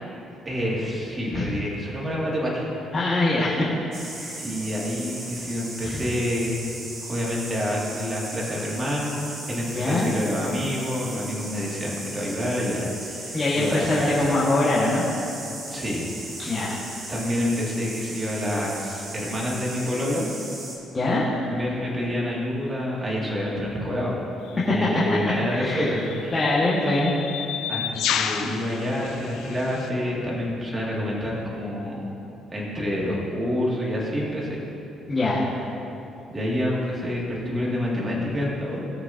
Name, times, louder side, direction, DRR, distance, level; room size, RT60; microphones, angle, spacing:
voice 1, 0.4-2.8 4.4-6.6 7.1-14.4 15.7-16.1 16.5-16.6 17.1-20.3 21.5-24.3 24.5-26.4 27.7-32.1 32.5-34.6 36.3-38.8, left 1 dB, 20° right, -5 dB, 2.3 m, -28 dB
voice 2, 2.9-3.7 4.0-4.4 5.8-6.1 9.7-10.1 13.3-15.0 16.4-16.8 20.9-21.5 24.6-25.2 25.5-25.9 26.3-27.5 35.1-35.5, left 2 dB, 25° left, -9 dB, 1.7 m, -23 dB
sound 1, 3.9-20.8, right 2 dB, 50° right, 2.4 m, -37 dB
sound 2, 24.5-24.7 25.7-29.9, left 8 dB, 85° left, 0.7 m, -31 dB
19.5 x 6.7 x 2.8 m, 2.9 s
cardioid pair, 120°, 0 cm